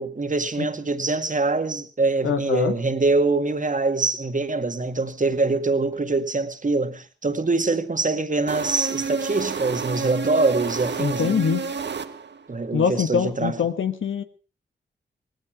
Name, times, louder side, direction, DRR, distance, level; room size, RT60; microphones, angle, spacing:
voice 1, 0.0-11.4 12.5-13.6, right 3 dB, 40° right, 1.9 m, -24 dB
voice 2, 2.2-2.7 11.0-11.6 12.7-14.2, left 7 dB, 80° left, 1.4 m, -24 dB
sound 1, 8.5-12.5, right 5 dB, 60° right, 1.3 m, -30 dB
17.5 x 16.0 x 4.9 m
cardioid pair, 45°, 20 cm